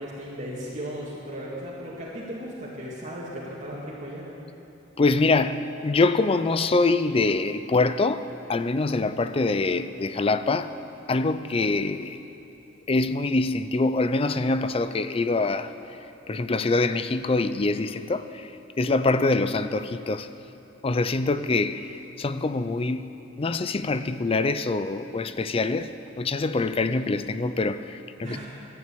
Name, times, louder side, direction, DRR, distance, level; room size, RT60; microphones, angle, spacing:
voice 1, 0.0-4.3 28.2-28.5, equal, 40° right, -7 dB, 2.2 m, -36 dB
voice 2, 5.0-10.7 11.1-12.2 12.9-15.7 16.3-18.5 18.8-20.3 20.8-23.1 23.4-25.9 26.2-28.4, left 3 dB, 30° left, 12 dB, 0.4 m, -24 dB
12.5 x 9.3 x 8.5 m, 2.8 s
head